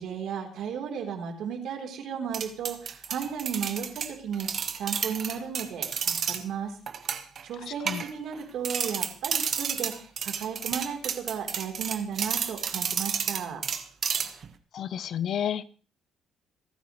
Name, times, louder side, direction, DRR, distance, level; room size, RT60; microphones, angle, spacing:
voice 1, 0.0-6.7 7.4-13.6, right 7 dB, 70° right, 3 dB, 3.8 m, -34 dB
sound 1, 2.3-6.4 6.9-7.4 7.9-8.4 8.6-14.5, right 7 dB, 50° right, 1.4 m, -31 dB
voice 2, 7.6-8.0 14.7-15.6, left 9 dB, 60° left, 16 dB, 0.7 m, -31 dB
27.0 x 9.5 x 3.2 m, 0.38 s
cardioid pair, 110°, 0 cm